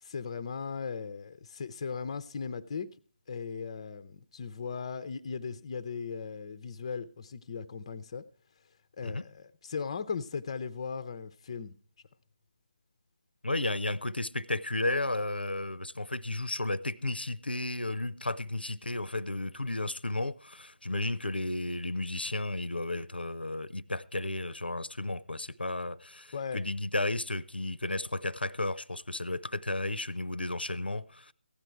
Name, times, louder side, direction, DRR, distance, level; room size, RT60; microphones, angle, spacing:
voice 1, 0.0-2.9 3.3-8.2 9.0-11.7 26.3-26.6, left 5 dB, 30° left, 0.6 m, -37 dB
voice 2, 13.4-31.3, left 2 dB, 80° left, 0.6 m, -33 dB
15.5 x 9.9 x 4.5 m
figure-of-eight pair, 155°, 5 cm